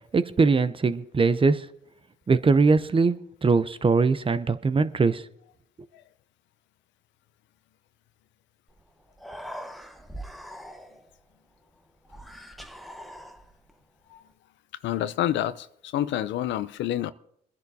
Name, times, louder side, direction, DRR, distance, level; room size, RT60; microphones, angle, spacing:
voice 1, 0.1-1.7 2.3-5.3, right 4 dB, 30° right, 0.7 m, -21 dB
Human voice, 8.7-8.8 9.1-11.2 12.1-13.7, equal, ahead, 1.1 m, -42 dB
voice 2, 14.8-17.1, left 12 dB, 75° left, 0.6 m, -28 dB
22.0 x 10.5 x 2.8 m
supercardioid pair, 65°, 19 cm